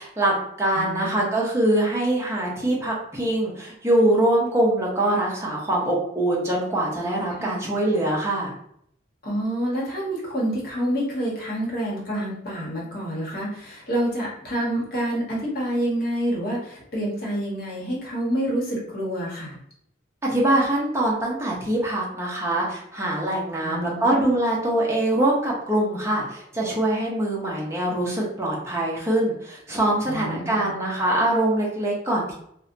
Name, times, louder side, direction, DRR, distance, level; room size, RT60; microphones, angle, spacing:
voice 1, 0.0-8.5 20.2-32.3, right 1 dB, 15° right, -4 dB, 0.5 m, -23 dB
voice 2, 0.7-1.3 7.4-7.7 9.2-19.6 23.6-24.2 30.0-30.7, right 1 dB, 50° left, -5 dB, 1.0 m, -28 dB
2.6 x 2.1 x 2.5 m, 0.70 s
head